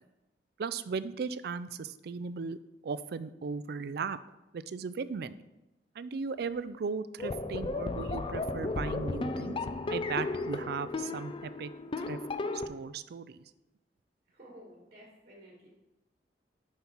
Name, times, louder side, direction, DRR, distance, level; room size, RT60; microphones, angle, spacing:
voice 1, 0.6-2.6 2.8-4.2 4.5-5.4 6.0-9.6 9.9-11.7 12.0-12.2 12.5-13.4, right 5 dB, 60° right, 15 dB, 0.4 m, -37 dB
sound 1, 7.2-12.7, left 3 dB, 30° left, 0.4 m, -34 dB
voice 2, 14.3-15.7, equal, 40° right, -3 dB, 1.8 m, -53 dB
7.3 x 5.5 x 4.5 m, 0.99 s
head